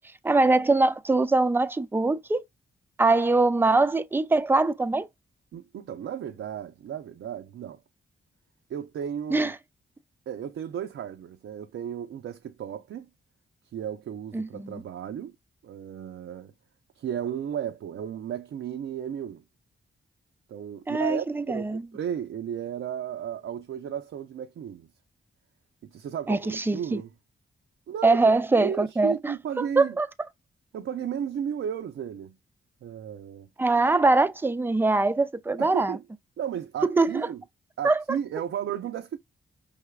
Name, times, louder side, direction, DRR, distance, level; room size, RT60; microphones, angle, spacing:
voice 1, 0.2-2.4 3.0-5.1 9.3-9.5 14.3-14.8 20.9-21.8 26.3-26.8 28.0-30.1 33.6-36.0 36.9-37.3 37.8-38.2, right 3 dB, 10° right, 0.4 m, -23 dB
voice 2, 5.5-7.8 8.7-9.5 10.3-13.1 13.7-15.3 15.6-16.5 17.0-19.4 20.5-24.9 25.8-27.1 27.9-30.0 30.7-32.4 32.8-33.5 35.6-36.0 36.4-37.4 37.8-39.2, right 9 dB, 80° right, 0.5 m, -34 dB
5.5 x 3.4 x 2.3 m
cardioid pair, 95°, 21 cm